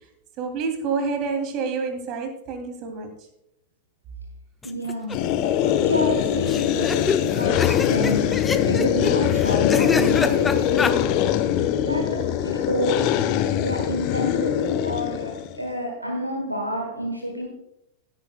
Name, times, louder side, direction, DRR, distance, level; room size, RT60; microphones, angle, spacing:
voice 1, 0.4-3.1, right 4 dB, 40° right, 5 dB, 2.5 m, -28 dB
sound 1, 4.6-5.2 5.5-5.6 5.7-5.8 6.5-10.9, left 4 dB, 15° left, 0.8 m, -26 dB
voice 2, 4.6-5.4 5.7-11.0 11.8-17.5, equal, 90° right, 2 dB, 1.4 m, -29 dB
sound 2, 5.1-15.6, left 10 dB, 40° left, 0.8 m, -22 dB
16.0 x 9.7 x 2.2 m, 0.80 s
figure-of-eight pair, 90°, 0 cm